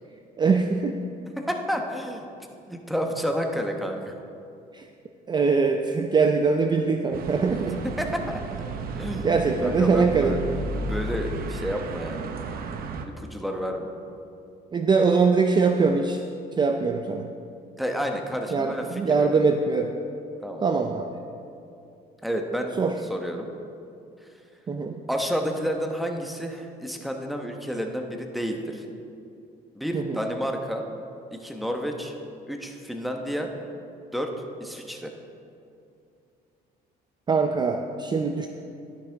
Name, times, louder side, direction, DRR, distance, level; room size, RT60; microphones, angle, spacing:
voice 1, 0.4-1.0 4.7-4.9 5.3-7.8 9.2-10.4 14.7-16.2 16.6-17.3 18.5-19.9 20.6-21.2 22.8-23.0 24.7-25.0 29.9-30.2 37.3-38.5, right 4 dB, 25° right, 5 dB, 0.5 m, -22 dB
voice 2, 1.4-2.3 2.7-4.1 7.7-8.7 9.0-9.3 9.6-10.4 10.7-12.3 13.1-13.9 17.8-19.4 20.4-20.7 22.2-22.7 23.1-23.5 25.1-28.8 29.7-30.8 31.3-32.1 32.5-33.5 34.1-34.3 34.6-35.1, equal, ahead, 3 dB, 1.0 m, -30 dB
sound 1, 7.1-13.0, right 3 dB, 60° right, 0.7 m, -33 dB
11.5 x 10.0 x 3.5 m, 2.6 s
cardioid pair, 110°, 17 cm